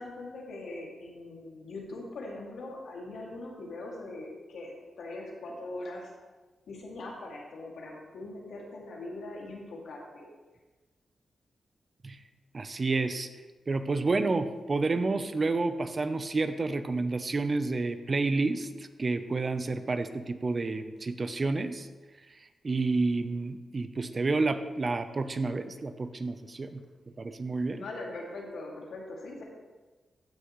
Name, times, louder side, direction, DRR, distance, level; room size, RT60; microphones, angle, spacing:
voice 1, 0.0-6.1 6.7-10.3 27.7-29.4, left 2 dB, 80° left, -2 dB, 2.3 m, -41 dB
voice 2, 12.5-13.3 13.7-21.9 22.6-26.8 27.2-27.8, right 3 dB, 40° right, 10 dB, 0.7 m, -30 dB
15.5 x 6.5 x 3.1 m, 1.3 s
cardioid pair, 90°, 0 cm